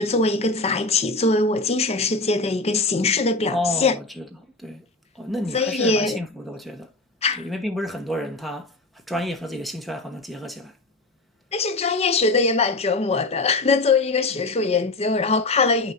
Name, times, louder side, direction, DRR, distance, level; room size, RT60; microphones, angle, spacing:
voice 1, 0.0-3.9 5.5-6.2 7.2-7.5 11.5-15.9, left 3 dB, 30° left, 0.6 m, -21 dB
voice 2, 3.5-4.3 4.6-4.8 5.1-6.9 7.3-10.8, equal, ahead, 1.1 m, -30 dB
9.6 x 5.1 x 2.7 m
head